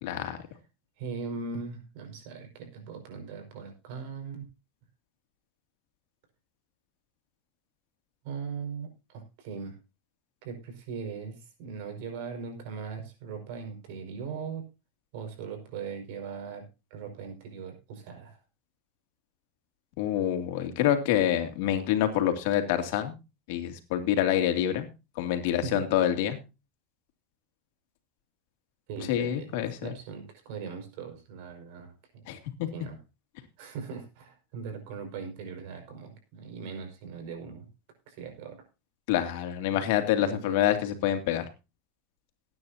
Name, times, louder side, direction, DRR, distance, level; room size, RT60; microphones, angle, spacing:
voice 1, 0.0-0.4 20.0-23.1 23.5-24.9 25.2-26.4 29.1-29.9 32.3-32.7 39.1-41.4, left 11 dB, 70° left, 6 dB, 2.5 m, -27 dB
voice 2, 1.0-4.4 8.2-9.8 10.4-14.6 15.1-18.4 25.6-25.9 28.9-31.9 32.7-33.0 33.6-37.7 38.1-38.6 39.7-39.8 40.2-40.6, right 5 dB, 70° right, 5 dB, 5.4 m, -39 dB
19.5 x 9.6 x 2.8 m, 0.28 s
supercardioid pair, 125°, 0 cm